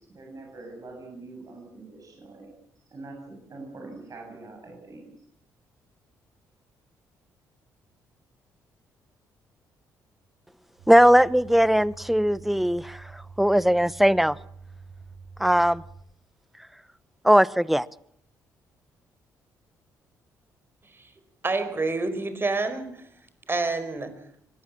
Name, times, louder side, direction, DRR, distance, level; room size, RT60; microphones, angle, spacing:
voice 1, 0.1-2.5 2.9-5.1, right 3 dB, 45° right, 0 dB, 7.7 m, -43 dB
sound 1, 10.8-16.0, right 4 dB, 75° right, 4.9 m, -46 dB
voice 2, 10.9-14.4 15.4-15.8 17.2-17.9, equal, ahead, 20 dB, 0.9 m, -19 dB
voice 3, 21.4-23.0 23.5-24.1, right 3 dB, 30° right, 10 dB, 5.0 m, -28 dB
25.0 x 18.5 x 7.5 m, 0.69 s
hypercardioid pair, 50°, 8 cm